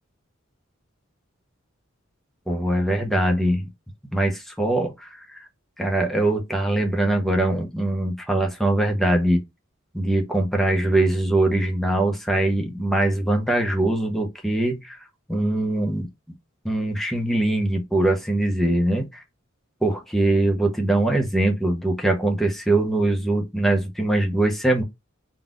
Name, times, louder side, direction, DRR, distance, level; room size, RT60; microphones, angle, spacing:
voice 1, 2.5-3.7 4.1-5.4 5.8-9.4 9.9-15.0 15.3-16.1 16.6-19.2 19.8-24.8, right 1 dB, ahead, 0.9 m, -22 dB
3.9 x 2.4 x 3.7 m
head